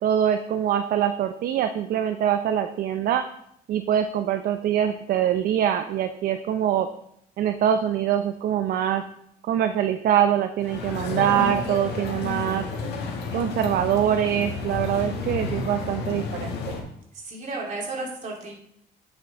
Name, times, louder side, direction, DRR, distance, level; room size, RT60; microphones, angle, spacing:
voice 1, 0.0-3.2 3.7-6.9 7.4-9.0 9.4-12.6 13.3-16.5, right 10 dB, 60° right, 8 dB, 0.5 m, -24 dB
sound 1, 10.6-16.8, left 4 dB, 80° left, 1.6 m, -31 dB
voice 2, 17.1-18.5, right 3 dB, 45° right, -2 dB, 2.9 m, -33 dB
8.3 x 6.0 x 3.8 m, 0.71 s
cardioid pair, 110°, 17 cm